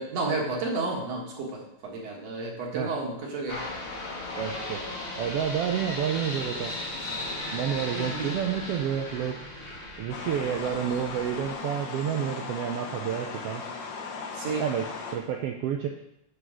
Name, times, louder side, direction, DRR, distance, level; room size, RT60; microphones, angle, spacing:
voice 1, 0.0-3.6 7.9-8.3 14.3-14.6, right 3 dB, 60° right, -2 dB, 2.5 m, -31 dB
sound 1, 3.5-11.5, left 2 dB, 40° left, 0.9 m, -36 dB
voice 2, 4.3-4.8 5.2-6.7 7.5-9.4 10.0-13.6 14.6-15.9, right 9 dB, 90° right, 3 dB, 1.3 m, -29 dB
sound 2, 10.1-15.2, left 4 dB, 80° left, 1.0 m, -37 dB
9.8 x 3.9 x 6.1 m, 0.78 s
omnidirectional pair, 3.4 m